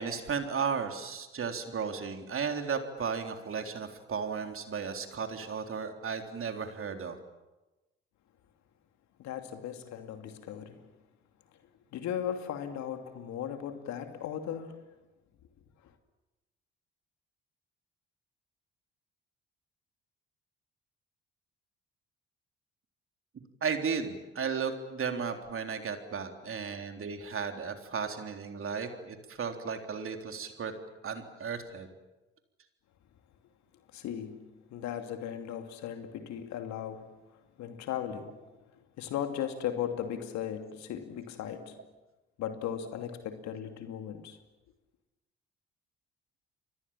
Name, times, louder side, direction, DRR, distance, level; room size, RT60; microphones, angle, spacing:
voice 1, 0.0-7.2 23.6-30.7 31.0-31.9, right 6 dB, 45° right, 3.7 m, -34 dB
voice 2, 9.2-10.8 11.9-14.8 33.9-37.2 37.6-38.4 39.0-41.8 42.4-44.4, left 9 dB, 65° left, 2.7 m, -37 dB
30.0 x 24.5 x 7.4 m
hypercardioid pair, 50°, 30 cm